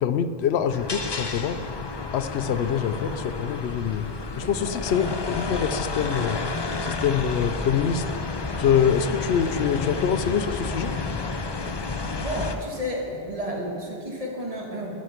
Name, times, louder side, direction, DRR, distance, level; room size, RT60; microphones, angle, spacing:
voice 1, 0.0-1.6 2.1-4.1 4.4-6.4 6.8-8.0 8.6-11.0, left 8 dB, 85° left, 11 dB, 0.8 m, -25 dB
sound 1, 0.7-12.6, left 3 dB, 35° left, 0.5 m, -30 dB
voice 2, 4.4-5.1 12.2-14.9, equal, 35° right, -1 dB, 1.6 m, -32 dB
13.0 x 6.3 x 5.9 m, 2.5 s
omnidirectional pair, 1.0 m